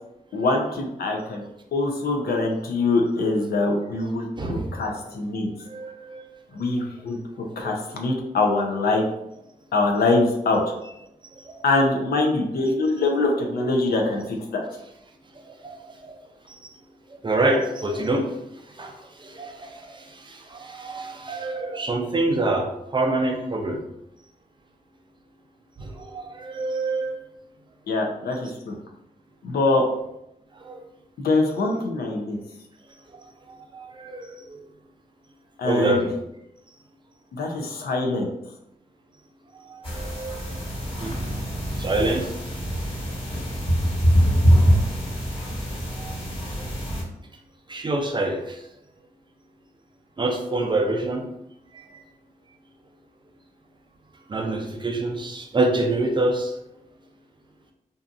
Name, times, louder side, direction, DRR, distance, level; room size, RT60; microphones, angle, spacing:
voice 1, 0.3-1.4 1.7-5.5 6.5-7.2 7.6-9.0 9.7-10.6 11.6-14.6 27.9-28.7 29.4-29.8 31.2-32.4 35.6-36.1 37.3-38.3, left 2 dB, 80° left, 1 dB, 0.5 m, -23 dB
voice 2, 5.7-6.2 7.6-7.8 11.4-11.7 15.5-16.2 17.2-18.3 18.8-23.8 25.8-27.2 30.6-30.8 33.5-34.6 35.6-36.1 39.6-40.5 41.0-41.2 41.8-42.3 46.0-46.2 47.7-48.6 50.2-51.3 51.7-52.0 54.3-56.5, right 2 dB, 30° right, 3 dB, 0.5 m, -26 dB
sound 1, 39.8-47.0, equal, 35° left, 1.3 m, -23 dB
2.7 x 2.4 x 2.4 m, 0.83 s
cardioid pair, 60°, 16 cm